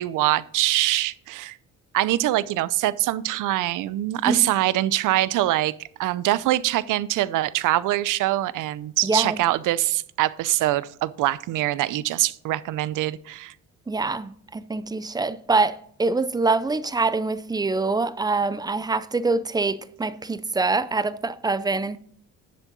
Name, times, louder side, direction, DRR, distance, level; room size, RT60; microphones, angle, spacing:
voice 1, 0.0-1.6 1.9-5.7 6.0-13.5, right 15 dB, 70° right, 0.6 m, -23 dB
voice 2, 9.0-9.4 13.9-22.0, right 3 dB, 10° right, 0.5 m, -24 dB
10.5 x 7.3 x 4.0 m
cardioid pair, 115°, 33 cm